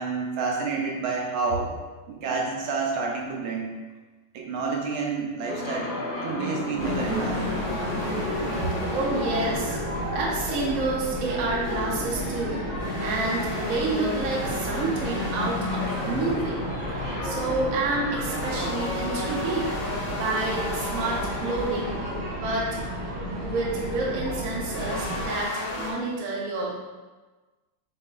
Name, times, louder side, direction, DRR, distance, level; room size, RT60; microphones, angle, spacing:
voice 1, 0.0-1.7 2.1-3.7 4.3-6.0 6.2-7.5, right 4 dB, 75° right, -1 dB, 1.4 m, -29 dB
sound 1, 5.4-21.2, left 1 dB, 65° left, 1.6 m, -36 dB
sound 2, 6.8-10.7 11.3-16.9 18.2-22.5 24.7-25.9, left 2 dB, 90° left, 2.0 m, -33 dB
sound 3, 6.8-25.3, right 1 dB, 30° right, 1.2 m, -33 dB
voice 2, 8.8-22.0 22.3-22.7 23.4-26.7, right 3 dB, 55° right, -3 dB, 1.0 m, -29 dB
4.8 x 4.2 x 2.3 m, 1.3 s
omnidirectional pair, 2.3 m